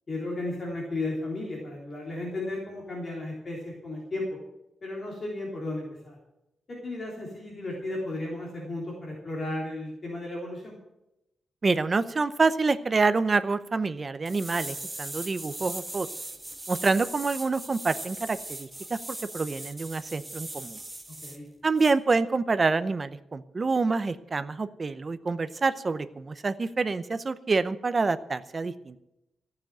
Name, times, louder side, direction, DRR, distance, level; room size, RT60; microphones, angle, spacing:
voice 1, 0.1-4.3 4.8-6.2 6.7-10.8 21.2-21.5, left 2 dB, 30° left, -3 dB, 3.4 m, -34 dB
voice 2, 11.6-16.1 16.7-19.0 19.3-20.8 21.6-29.0, right 4 dB, 25° right, 13 dB, 0.7 m, -27 dB
sound 1, 14.3-21.4 21.8-21.9, right 1 dB, 10° right, 1.4 m, -39 dB
14.5 x 7.3 x 9.1 m, 0.86 s
wide cardioid pair, 160°, 0 cm